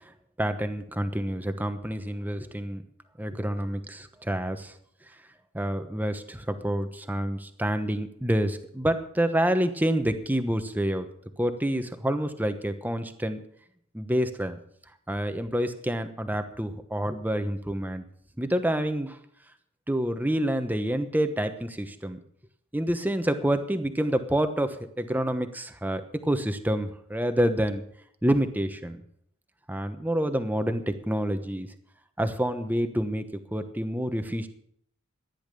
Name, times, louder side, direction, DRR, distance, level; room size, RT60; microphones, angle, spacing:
voice 1, 0.4-2.8 3.2-4.7 5.5-11.1 11.4-13.4 13.9-14.6 15.1-18.0 18.4-19.2 19.9-22.2 22.7-27.8 28.2-29.0 29.7-31.7 32.2-34.5, right 1 dB, 10° right, 9 dB, 1.0 m, -28 dB
14.0 x 10.5 x 6.8 m, 0.69 s
head